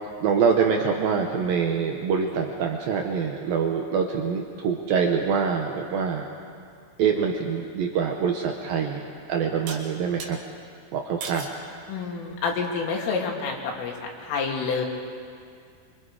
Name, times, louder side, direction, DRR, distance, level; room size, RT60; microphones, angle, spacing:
voice 1, 0.2-6.3 7.0-10.4 10.9-11.5, right 6 dB, 80° right, 2 dB, 2.0 m, -25 dB
sound 1, 9.7-10.3 11.2-11.6 12.2-12.7, right 5 dB, 60° right, 3.2 m, -37 dB
voice 2, 11.9-14.9, left 5 dB, 80° left, 0 dB, 4.9 m, -28 dB
25.5 x 25.5 x 5.0 m, 2.3 s
omnidirectional pair, 5.7 m